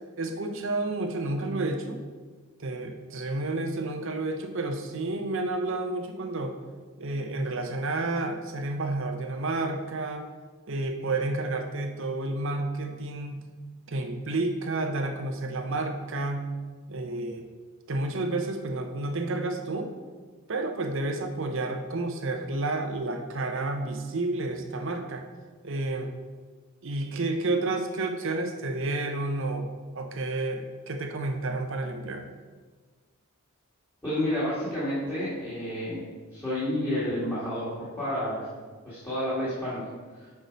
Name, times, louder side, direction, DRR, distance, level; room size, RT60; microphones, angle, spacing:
voice 1, 0.2-2.0 2.6-6.5 7.0-10.3 10.7-13.4 13.9-16.5 16.9-17.5 17.9-19.9 20.5-25.2 25.6-26.1 26.8-29.7 29.9-32.3, right 2 dB, 60° right, 5 dB, 0.7 m, -30 dB
voice 2, 34.0-36.0 36.3-38.5 38.8-39.8, left 1 dB, 10° left, -12 dB, 1.9 m, -30 dB
6.6 x 4.8 x 5.2 m, 1.4 s
head